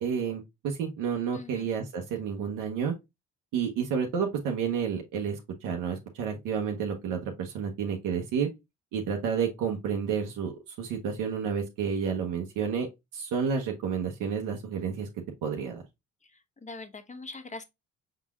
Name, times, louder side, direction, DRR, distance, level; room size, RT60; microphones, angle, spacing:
voice 1, 0.0-2.9 3.5-8.5 8.9-15.1 15.4-15.8, right 7 dB, 85° right, 1.0 m, -30 dB
voice 2, 1.3-1.7 16.2-17.6, left 3 dB, 20° left, 1.0 m, -43 dB
5.6 x 3.8 x 2.3 m
supercardioid pair, 65°, 32 cm